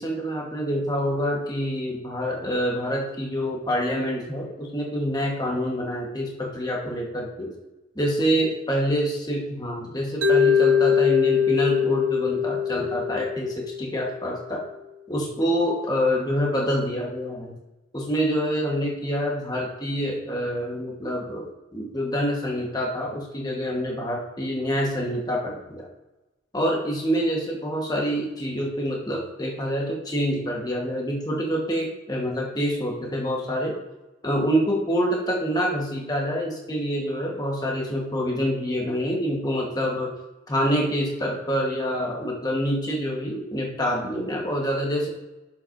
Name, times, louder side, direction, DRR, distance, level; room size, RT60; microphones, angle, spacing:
voice 1, 0.0-7.5 7.9-14.6 15.1-17.5 17.9-25.9 26.5-33.8 34.2-40.1 40.5-45.1, equal, 20° left, -2 dB, 1.2 m, -26 dB
Mallet percussion, 10.2-14.3, left 7 dB, 80° right, 0.7 m, -22 dB
11.0 x 7.4 x 2.6 m, 1.1 s
head